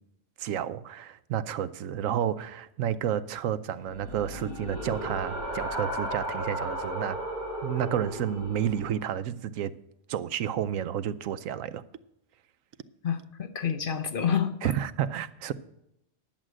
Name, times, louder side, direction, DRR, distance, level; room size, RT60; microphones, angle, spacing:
voice 1, 0.4-7.2 7.6-9.7 10.1-11.8 14.6-15.5, right 10 dB, 90° right, 1.0 m, -31 dB
sound 1, 3.8-8.9, equal, 30° left, 4.7 m, -35 dB
voice 2, 13.0-14.7, left 7 dB, 50° left, 0.8 m, -28 dB
10.5 x 7.6 x 6.2 m
omnidirectional pair, 1.3 m